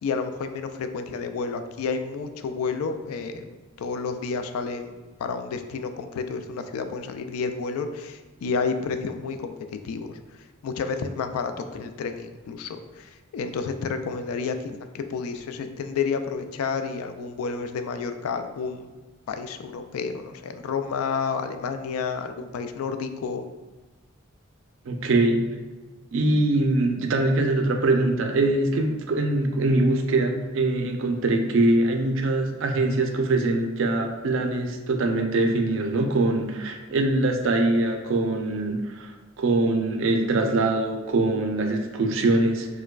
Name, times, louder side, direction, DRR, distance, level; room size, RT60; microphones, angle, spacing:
voice 1, 0.0-4.9 5.2-9.5 9.8-10.2 10.6-18.9 19.3-23.5, left 5 dB, 85° left, 9 dB, 0.3 m, -30 dB
voice 2, 24.9-25.5 26.1-39.1 39.4-42.7, right 2 dB, 60° right, 4 dB, 0.4 m, -23 dB
4.5 x 2.2 x 2.2 m, 1.3 s
head